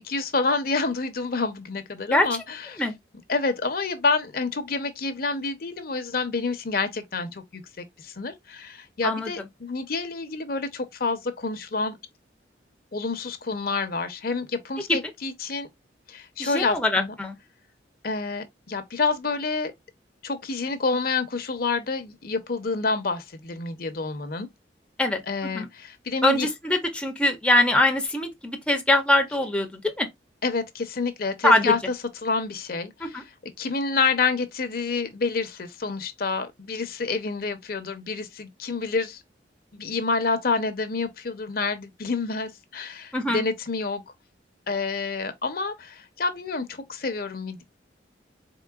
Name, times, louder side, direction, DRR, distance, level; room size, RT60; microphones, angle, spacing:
voice 1, 0.0-2.8 3.3-12.0 12.9-15.7 16.1-17.1 18.0-19.7 20.2-24.5 25.3-26.5 30.4-31.8 32.2-39.2 39.7-44.0 44.7-47.6, left 4 dB, 55° left, 0.7 m, -28 dB
voice 2, 16.4-17.4 25.0-25.2 25.5-25.7 26.2-30.1 31.4-31.7 33.1-33.2 43.1-43.4, left 1 dB, 5° left, 0.6 m, -22 dB
4.1 x 3.7 x 2.3 m
head